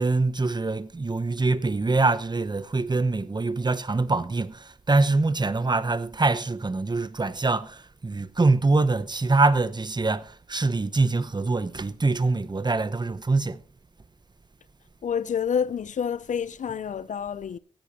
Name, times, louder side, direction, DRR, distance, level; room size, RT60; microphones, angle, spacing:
voice 1, 0.0-13.6, right 3 dB, 35° right, 0.9 m, -24 dB
voice 2, 15.0-17.6, left 7 dB, 75° left, 0.5 m, -28 dB
15.5 x 11.0 x 2.9 m
cardioid pair, 45°, 13 cm